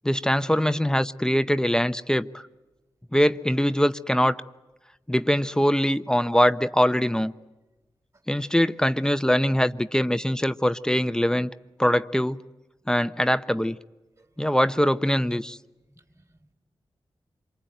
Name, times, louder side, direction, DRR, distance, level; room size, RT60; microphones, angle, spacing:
voice 1, 0.0-2.4 3.1-4.3 5.1-7.3 8.3-11.5 11.8-12.4 12.9-13.8 14.4-15.6, equal, 5° left, 0.9 m, -22 dB
voice 2, 14.2-14.5 15.8-16.5, right 2 dB, 35° right, 4.1 m, -62 dB
26.5 x 24.0 x 9.3 m
cardioid pair, 50°, 9 cm